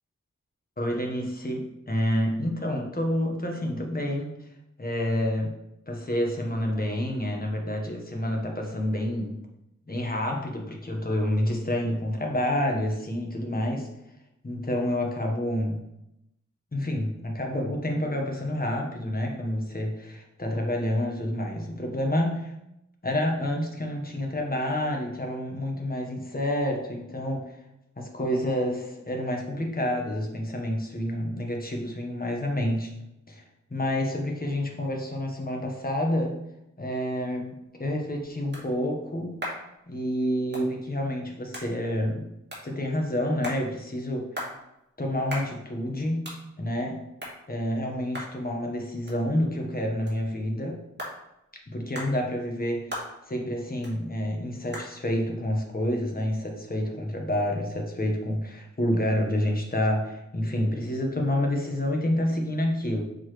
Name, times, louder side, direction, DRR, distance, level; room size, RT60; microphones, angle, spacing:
voice 1, 0.8-4.3 4.8-5.5 5.9-9.4 9.9-13.9 14.4-15.8 16.7-22.5 23.0-27.5 28.0-32.9 33.3-33.4 33.7-36.3 36.8-37.5 37.8-39.4 39.9-42.2 42.6-44.3 45.0-46.3 46.6-47.0 47.5-50.8 51.7-53.0 53.3-63.0, left 1 dB, 30° left, 1 dB, 1.3 m, -28 dB
sound 1, 37.6-56.9, equal, 35° right, 2.1 m, -43 dB
7.2 x 4.1 x 3.2 m, 0.85 s
wide cardioid pair, 75°, 30 cm